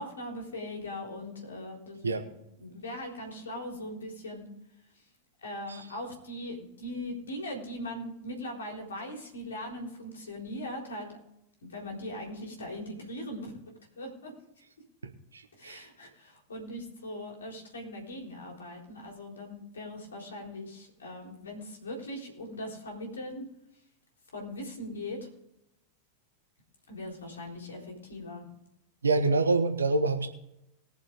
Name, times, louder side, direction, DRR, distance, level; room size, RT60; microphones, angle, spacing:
voice 1, 0.0-2.2 2.6-4.5 5.4-11.1 11.6-13.5 14.0-14.3 15.6-23.4 24.3-25.3 26.9-28.5, left 1 dB, 70° left, 1 dB, 3.8 m, -40 dB
voice 2, 15.0-15.8 29.0-30.3, right 3 dB, 75° right, 7 dB, 1.3 m, -27 dB
21.0 x 7.0 x 3.7 m, 0.83 s
figure-of-eight pair, 90°, 0 cm